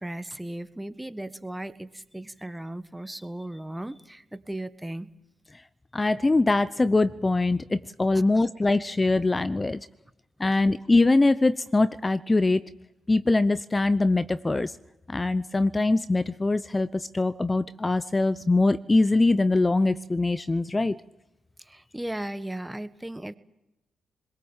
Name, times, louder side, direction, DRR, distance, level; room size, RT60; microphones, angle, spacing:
voice 1, 0.0-5.1 8.1-8.4 10.5-10.6 21.6-23.3, right 1 dB, 10° right, 13 dB, 1.5 m, -36 dB
voice 2, 5.9-9.8 10.4-12.6 13.1-14.7 15.1-21.0, left 2 dB, 25° left, 15 dB, 0.7 m, -23 dB
23.0 x 21.5 x 7.4 m, 0.95 s
hypercardioid pair, 45°, 0 cm